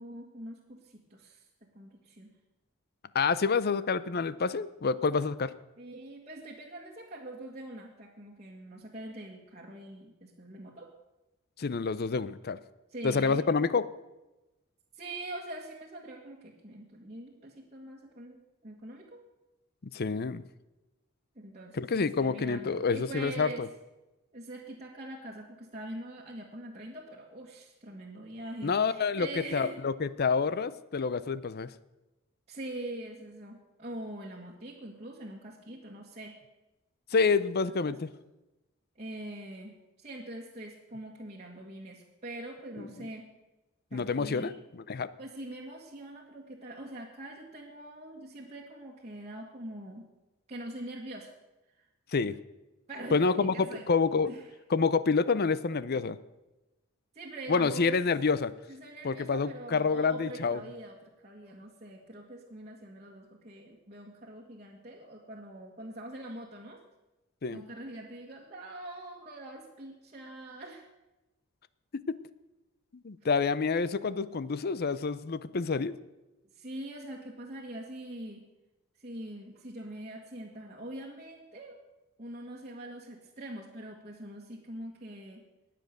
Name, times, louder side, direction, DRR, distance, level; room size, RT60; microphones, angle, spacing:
voice 1, 0.0-1.5 1.7-2.3 5.8-10.9 12.9-13.4 14.9-19.2 21.4-23.6 24.3-29.8 32.5-36.4 37.9-38.0 39.0-43.3 43.9-44.6 45.2-50.1 50.5-51.3 51.8-51.9 52.9-53.9 54.2-54.4 57.1-58.0 58.7-66.8 67.5-70.9 76.6-78.4 79.0-81.8 82.2-85.4, right 1 dB, 30° right, -4 dB, 1.7 m, -43 dB
voice 2, 3.1-5.5 11.6-12.6 13.0-13.9 19.9-20.4 21.8-23.7 28.6-31.7 37.1-38.1 42.8-43.1 43.9-44.5 44.9-45.1 52.1-52.4 53.1-54.3 54.7-56.2 57.5-58.5 59.0-60.6 67.4-67.6 72.1-72.2 72.9-76.0, left 4 dB, 50° left, 17 dB, 0.6 m, -28 dB
19.5 x 7.6 x 6.6 m, 1.0 s
head